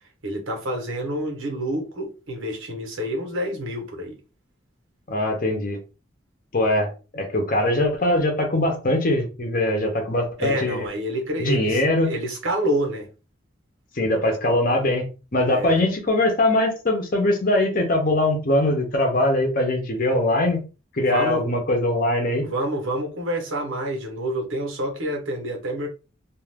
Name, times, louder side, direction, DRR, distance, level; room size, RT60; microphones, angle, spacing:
voice 1, 0.2-4.2 10.4-13.1 15.5-15.8 21.0-21.5 22.4-25.9, right 1 dB, 90° right, 1.0 m, -28 dB
voice 2, 5.1-5.8 6.5-10.8 11.4-12.1 14.0-15.0 15.3-20.6 21.0-22.5, left 1 dB, 45° left, 0.7 m, -22 dB
2.5 x 2.4 x 3.3 m
head